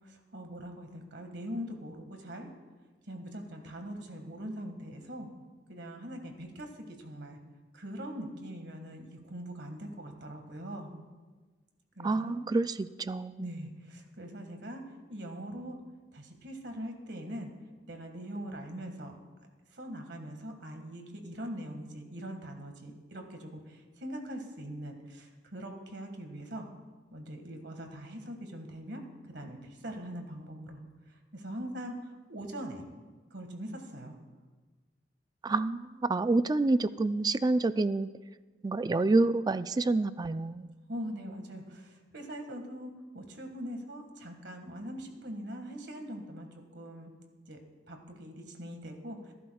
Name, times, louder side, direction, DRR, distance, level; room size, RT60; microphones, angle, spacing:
voice 1, 0.0-2.5 3.1-5.3 5.7-7.4 7.7-10.9 12.0-12.4 13.4-14.8 15.1-15.8 16.1-17.5 17.9-19.2 19.7-26.7 27.1-30.8 31.1-32.8 33.3-34.2 40.9-46.5 46.7-47.1 47.5-47.6 47.9-49.3, equal, 70° right, 4 dB, 1.8 m, -42 dB
voice 2, 12.0-13.5 35.4-38.1 38.6-40.7, right 2 dB, 20° right, 13 dB, 0.3 m, -28 dB
28.0 x 11.0 x 2.3 m, 1.3 s
head